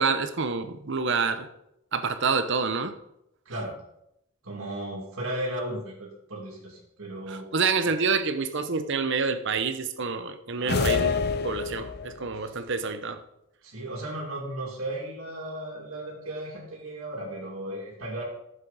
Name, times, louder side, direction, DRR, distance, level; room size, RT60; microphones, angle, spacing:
voice 1, 0.0-1.5 1.9-3.0 7.3-11.1 11.4-13.2, right 5 dB, 55° right, 9 dB, 0.8 m, -27 dB
voice 2, 3.4-3.8 4.4-7.5 10.5-11.0 12.4-12.6 13.6-18.2, right 1 dB, 75° right, -7 dB, 2.5 m, -35 dB
sound 1, 10.7-12.2, left 5 dB, 45° left, 0.7 m, -27 dB
12.0 x 7.4 x 4.1 m, 0.82 s
head